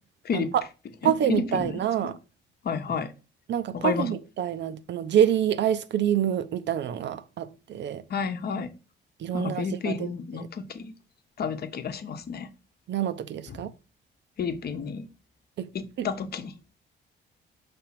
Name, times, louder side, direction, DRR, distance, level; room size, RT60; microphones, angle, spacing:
voice 1, 0.3-0.6 1.0-2.2 3.5-8.0 9.2-10.1 10.3-10.5 12.9-13.7 15.6-15.7 16.0-16.1, right 10 dB, 65° right, 0.7 m, -27 dB
voice 2, 1.0-2.1 2.6-3.1 3.7-4.1 8.1-8.7 9.3-10.9 11.4-12.5 13.5-13.6 14.4-15.1 15.7-16.5, left 5 dB, 50° left, 0.9 m, -31 dB
5.8 x 3.4 x 5.8 m
cardioid pair, 90°, 20 cm